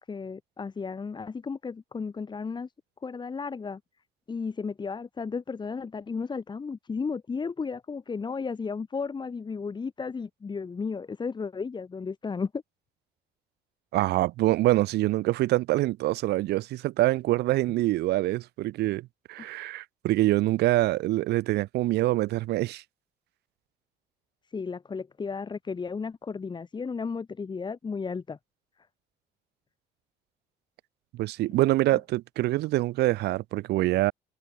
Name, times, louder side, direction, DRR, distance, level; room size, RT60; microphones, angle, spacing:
voice 1, 0.0-2.7 3.0-3.8 4.3-12.6 24.5-28.4 31.9-32.0, left 5 dB, 25° left, 2.1 m, -34 dB
voice 2, 13.9-22.8 31.1-34.1, right 17 dB, 80° right, 1.6 m, -25 dB
cardioid pair, 110°, 17 cm